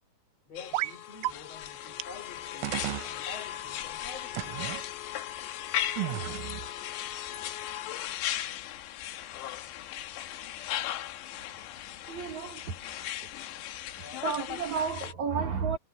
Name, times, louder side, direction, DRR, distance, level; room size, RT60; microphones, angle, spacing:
voice 1, 0.4-4.8 14.0-14.3, left 3 dB, 30° left, 7.8 m, -48 dB
sound 1, 0.6-15.1, left 12 dB, 70° left, 3.2 m, -37 dB
sound 2, 0.7-1.0 1.2-1.3 2.0-2.1 2.6-3.1 4.3-4.8 6.0-6.7, right 18 dB, 90° right, 3.4 m, -33 dB
voice 2, 12.1-12.6 14.2-15.8, right 6 dB, 65° right, 1.9 m, -31 dB
omnidirectional pair, 5.8 m